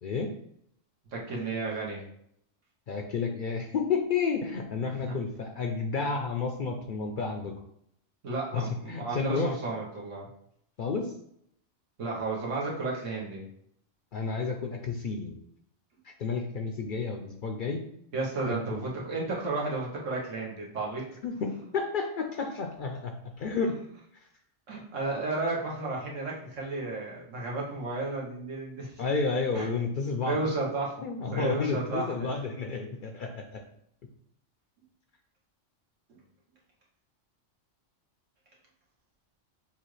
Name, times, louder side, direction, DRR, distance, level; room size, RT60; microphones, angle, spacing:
voice 1, 0.0-0.3 2.9-7.5 8.5-9.6 10.8-11.1 14.1-15.4 16.0-17.8 18.4-18.9 21.2-23.1 23.4-23.8 24.1-24.2 29.0-30.4 31.0-33.6, left 4 dB, 60° left, 3 dB, 0.5 m, -31 dB
voice 2, 1.1-2.0 4.9-5.1 8.2-10.3 12.0-13.5 18.1-21.0 24.7-28.9 29.5-29.7 30.2-31.0 31.3-32.4 36.1-36.2, right 3 dB, 85° right, -3 dB, 1.5 m, -33 dB
6.9 x 2.4 x 3.1 m, 0.72 s
omnidirectional pair, 1.3 m